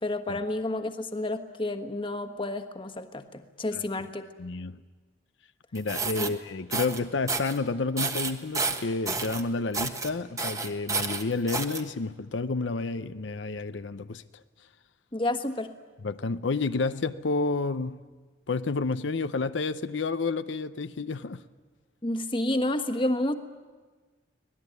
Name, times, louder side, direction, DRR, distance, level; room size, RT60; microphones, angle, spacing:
voice 1, 0.0-4.3 6.2-6.3 15.1-15.7 22.0-23.4, left 1 dB, 30° left, 1.3 m, -30 dB
voice 2, 4.4-4.8 5.7-14.2 16.0-18.0 18.5-21.4, left 3 dB, 85° left, 0.7 m, -30 dB
sound 1, 5.7-6.3 6.7-7.0 7.3-7.6 8.0-9.4 9.7-10.1 10.4-11.8, right 4 dB, 20° right, 1.2 m, -30 dB
25.0 x 18.5 x 9.4 m
head